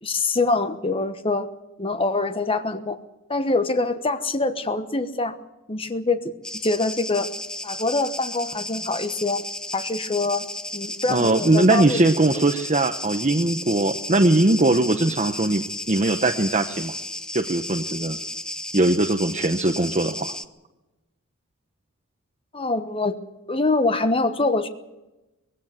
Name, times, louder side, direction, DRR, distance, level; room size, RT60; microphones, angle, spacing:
voice 1, 0.0-1.5 1.8-3.0 3.3-5.3 5.7-6.3 6.6-7.3 7.6-9.4 9.7-10.5 10.7-12.0 22.5-23.2 23.5-24.7, left 3 dB, 25° left, 9 dB, 1.1 m, -24 dB
sound 1, 6.4-20.4, left 1 dB, 5° left, 0.6 m, -33 dB
voice 2, 11.1-16.9 17.3-18.2 18.7-20.3, right 2 dB, 30° right, 6 dB, 0.9 m, -20 dB
20.5 x 16.5 x 8.0 m, 1.0 s
head